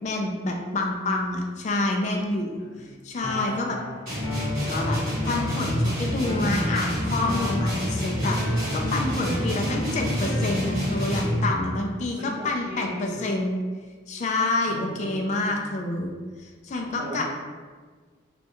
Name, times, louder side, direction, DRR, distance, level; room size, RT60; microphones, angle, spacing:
voice 1, 0.0-3.8 4.7-5.0 5.3-13.6 14.1-16.1 16.4-17.2, left 2 dB, 35° left, 1 dB, 0.3 m, -28 dB
voice 2, 2.6-2.9 3.6-4.0 9.5-9.9 12.2-13.2 14.7-15.4 17.0-17.2, equal, 30° right, -10 dB, 1.1 m, -38 dB
sound 1, 3.2-11.1, left 1 dB, 60° left, 0.9 m, -35 dB
sound 2, 4.1-11.6, equal, 45° right, 1.5 m, -27 dB
3.2 x 2.2 x 2.9 m, 1.5 s
head